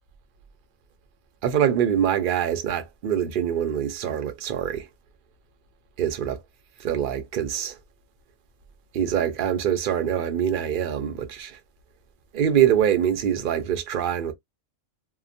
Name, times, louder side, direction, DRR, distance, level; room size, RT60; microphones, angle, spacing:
voice 1, 1.4-4.9 6.0-6.4 6.8-7.8 8.9-11.6 12.3-14.3, right 9 dB, 55° right, 0.6 m, -24 dB
2.8 x 2.0 x 2.5 m
omnidirectional pair, 1.5 m